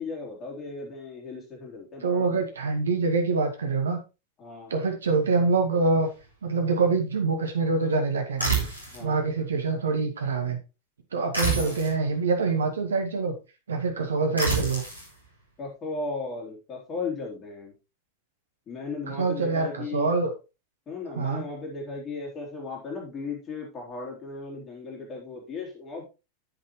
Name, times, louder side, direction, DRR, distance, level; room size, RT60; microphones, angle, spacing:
voice 1, 0.0-2.5 4.4-4.7 8.9-9.2 11.5-11.8 15.6-17.7 18.7-20.1 20.9-26.1, left 4 dB, 25° left, -1 dB, 3.3 m, -36 dB
voice 2, 2.0-4.0 4.7-6.1 6.4-8.7 9.0-10.6 11.1-13.3 13.7-14.8 19.1-20.3 21.1-21.4, right 4 dB, 70° right, 4 dB, 2.1 m, -25 dB
sound 1, 8.4-9.0 11.3-12.0 14.4-15.1, right 4 dB, 90° right, 3.4 m, -27 dB
9.8 x 7.6 x 3.1 m, 0.28 s
figure-of-eight pair, 90°, 0 cm